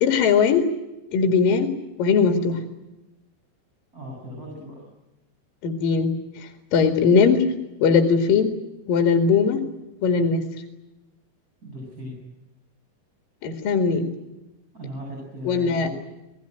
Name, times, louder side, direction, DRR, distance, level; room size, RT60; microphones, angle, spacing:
voice 1, 0.0-0.7 1.1-1.7 2.0-2.6 5.6-7.5 7.8-8.5 8.9-9.6 10.0-10.4 13.4-14.1 15.4-15.9, left 5 dB, 55° left, 5 dB, 3.4 m, -20 dB
voice 2, 3.9-4.8 11.6-12.1 14.7-15.9, equal, 20° right, -1 dB, 8.1 m, -37 dB
27.5 x 19.5 x 9.1 m, 0.99 s
omnidirectional pair, 5.3 m